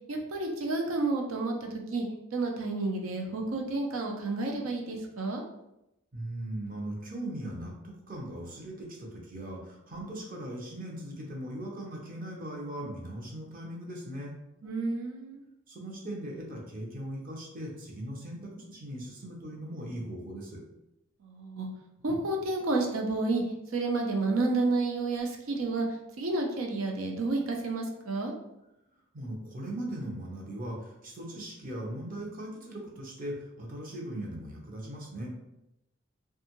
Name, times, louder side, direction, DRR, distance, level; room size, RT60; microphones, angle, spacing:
voice 1, 0.1-2.1 2.3-5.4 14.6-15.4 21.2-21.7 22.0-23.4 23.7-25.9 26.2-28.3, right 3 dB, 85° right, 1 dB, 0.5 m, -30 dB
voice 2, 6.1-14.3 15.7-20.6 29.1-35.3, right 1 dB, 45° right, -2 dB, 0.6 m, -39 dB
2.6 x 2.3 x 2.8 m, 0.88 s
head